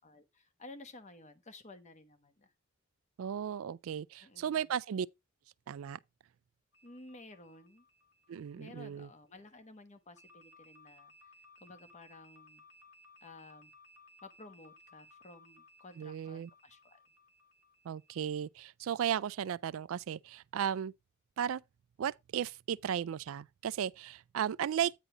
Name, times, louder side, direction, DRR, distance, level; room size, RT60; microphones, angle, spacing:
voice 1, 0.0-2.5 4.2-4.7 6.8-7.8 8.5-11.1 11.6-12.6 13.2-13.7 14.2-17.0, left 2 dB, 35° left, 1.1 m, -54 dB
voice 2, 3.2-5.1 5.7-6.0 8.3-9.1 16.0-16.5 17.9-20.9 21.4-21.6 22.0-24.9, right 9 dB, 70° right, 0.3 m, -35 dB
sound 1, 6.7-9.3 10.2-18.5, left 2 dB, 80° left, 2.1 m, -61 dB
9.2 x 3.9 x 4.9 m
head